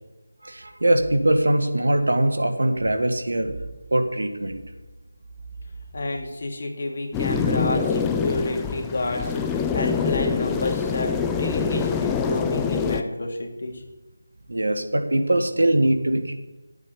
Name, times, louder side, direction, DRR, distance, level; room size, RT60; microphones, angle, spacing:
voice 1, 0.4-3.5 3.9-4.6 14.5-16.3, right 1 dB, 80° right, 6 dB, 1.7 m, -22 dB
voice 2, 5.9-11.1 11.4-13.8, left 2 dB, 50° left, 2 dB, 2.4 m, -29 dB
sound 1, 7.1-13.0, left 6 dB, 10° left, 0.5 m, -25 dB
8.7 x 8.4 x 8.7 m, 1.1 s
figure-of-eight pair, 165°, 0 cm